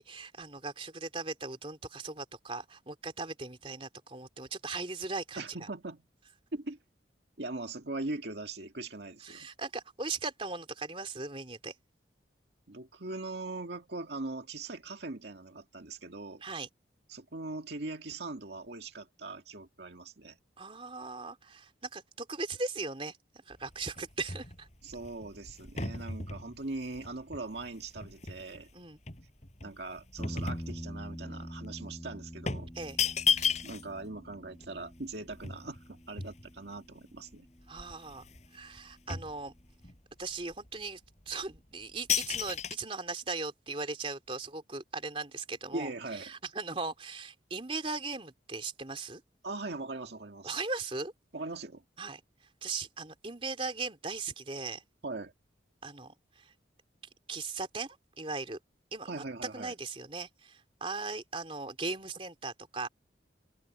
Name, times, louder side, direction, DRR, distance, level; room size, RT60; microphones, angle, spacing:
voice 1, 0.0-5.4 9.2-11.7 16.4-16.7 20.6-23.2 23.5-24.7 28.7-29.0 32.7-33.0 37.7-38.2 38.5-39.5 40.2-41.0 41.3-49.2 50.4-51.1 52.0-52.2 52.6-54.8 55.8-56.5 57.3-58.6 58.9-59.2 59.5-62.9, right 3 dB, 30° right, 3.0 m, -38 dB
voice 2, 5.4-6.1 6.5-6.8 7.4-9.5 12.7-16.4 17.1-20.4 24.8-28.7 29.6-32.7 33.6-37.5 45.7-46.3 49.4-50.6 51.3-51.8 55.0-55.3 59.0-59.7, right 2 dB, 65° right, 2.0 m, -40 dB
sound 1, 23.5-28.6 29.1-31.2 31.5-31.7 32.5-34.0 34.3-34.4 34.6-36.8 37.3-37.4 37.7-38.5 38.7-40.0 40.5-40.7 41.3-41.6 42.1-42.8, left 6 dB, 40° left, 5.5 m, -34 dB
sound 2, 30.2-38.5, equal, 15° left, 5.1 m, -46 dB
open air
head